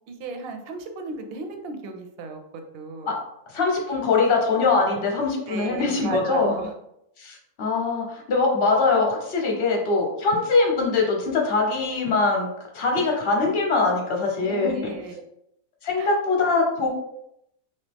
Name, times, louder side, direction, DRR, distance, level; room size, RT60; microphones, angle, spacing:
voice 1, 0.1-3.2 5.5-6.7 14.4-15.2 16.0-16.2, right 3 dB, 65° right, 5 dB, 0.6 m, -35 dB
voice 2, 3.5-6.5 7.2-12.5 12.7-14.9 15.8-16.9, left 3 dB, 50° left, 0 dB, 0.9 m, -22 dB
2.9 x 2.7 x 3.4 m, 0.79 s
omnidirectional pair, 1.5 m